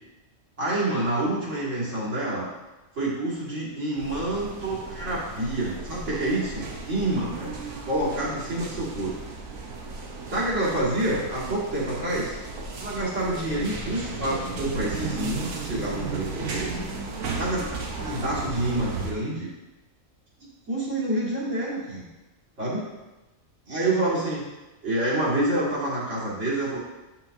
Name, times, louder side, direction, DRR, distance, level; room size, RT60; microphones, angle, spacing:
voice 1, 0.6-2.5 2.9-9.1 10.3-12.4 12.8-16.7 17.4-17.6 18.0-19.5 20.7-22.1 22.6-22.9 23.7-24.5 24.8-26.8, right 1 dB, 60° right, -7 dB, 2.2 m, -27 dB
sound 1, 4.0-19.1, right 3 dB, 75° right, 1.2 m, -35 dB
7.3 x 5.7 x 2.6 m, 1.1 s
omnidirectional pair, 1.4 m